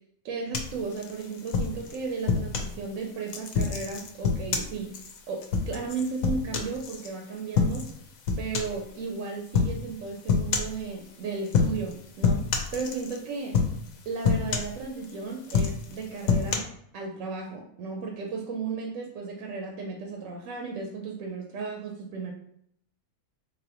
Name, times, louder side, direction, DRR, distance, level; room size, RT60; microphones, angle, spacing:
voice 1, 0.2-7.9 8.4-13.6 14.1-22.3, right 4 dB, 70° right, 1 dB, 0.9 m, -35 dB
sound 1, 0.5-2.7 3.3-7.1 7.5-8.0 8.3-8.8 9.5-9.8 10.3-10.8 11.5-11.9 12.2-13.2 13.5-13.9 14.2-15.1 15.4-16.6, left 5 dB, 75° left, 1.0 m, -27 dB
4.0 x 2.8 x 2.9 m, 0.70 s
omnidirectional pair, 1.6 m